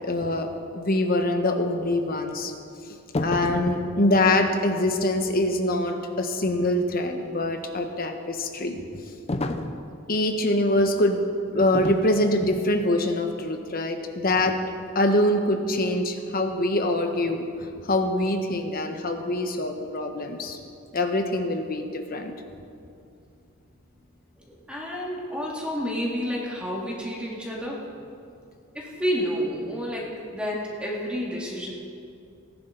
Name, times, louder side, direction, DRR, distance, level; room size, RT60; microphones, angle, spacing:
voice 1, 0.0-2.5 3.2-9.0 10.1-11.2 11.5-14.6 14.9-20.6 20.9-22.3 24.9-25.1, left 1 dB, 45° left, 5 dB, 1.1 m, -24 dB
sound 1, 3.1-3.7 9.3-9.8 11.7-12.1 12.4-12.7, left 2 dB, 30° left, 0.6 m, -29 dB
voice 2, 24.4-27.9 28.7-31.7, equal, 5° right, -4 dB, 2.1 m, -30 dB
18.0 x 10.5 x 4.0 m, 2.5 s
head